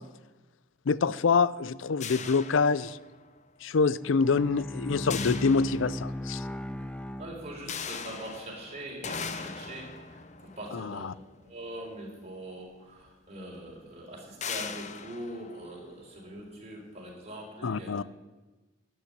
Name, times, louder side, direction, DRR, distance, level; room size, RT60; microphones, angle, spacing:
voice 1, 0.9-3.0 3.6-6.4 10.7-11.1 17.6-18.0, left 4 dB, 75° left, 19 dB, 0.5 m, -26 dB
sound 1, 2.0-3.4 5.1-6.4 7.7-12.1 13.1-13.2 13.5-13.7 14.4-16.4, left 6 dB, 35° left, 0.8 m, -40 dB
Bowed string instrument, 4.0-8.1, left 1 dB, 5° left, 0.6 m, -37 dB
voice 2, 7.2-11.1 11.4-18.0, right 1 dB, 35° right, -2 dB, 4.4 m, -42 dB
12.5 x 8.5 x 9.9 m, 1.2 s
head